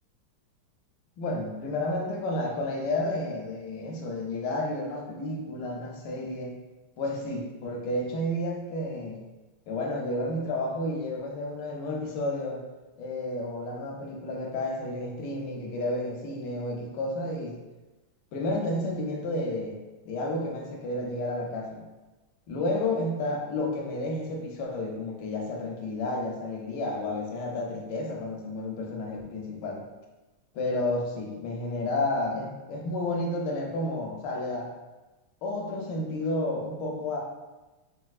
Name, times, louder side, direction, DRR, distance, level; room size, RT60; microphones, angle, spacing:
voice 1, 1.2-6.5 7.0-9.2 9.7-12.6 13.0-17.6 18.3-19.8 20.0-21.8 22.5-29.8 30.5-34.7 35.4-37.2, left 1 dB, 75° left, 0 dB, 1.0 m, -31 dB
4.1 x 2.2 x 2.3 m, 1.1 s
omnidirectional pair, 2.4 m